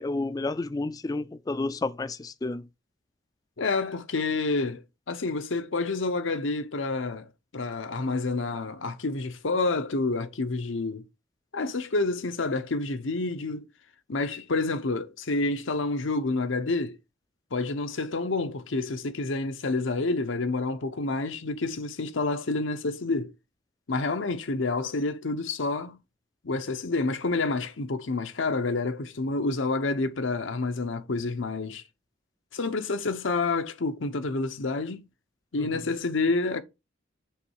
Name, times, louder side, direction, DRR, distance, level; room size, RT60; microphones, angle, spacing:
voice 1, 0.0-2.7 35.6-35.7, left 2 dB, 20° left, 0.3 m, -31 dB
voice 2, 3.6-11.0 11.5-13.6 14.1-17.0 17.5-23.3 23.9-26.0 26.4-31.8 32.5-35.0 35.5-36.6, left 3 dB, 85° left, 0.8 m, -28 dB
6.9 x 3.2 x 4.6 m
head